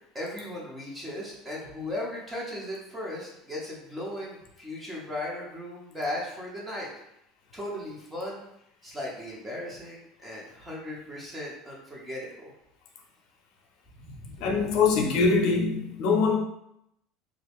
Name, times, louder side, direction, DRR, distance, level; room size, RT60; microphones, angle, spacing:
voice 1, 0.1-6.9 7.5-8.4 8.8-12.5 14.0-14.7, left 1 dB, 15° right, -4 dB, 1.0 m, -37 dB
voice 2, 14.4-16.4, left 4 dB, 55° left, 1 dB, 0.7 m, -23 dB
3.7 x 2.2 x 3.5 m, 0.79 s
supercardioid pair, 135°, 0 cm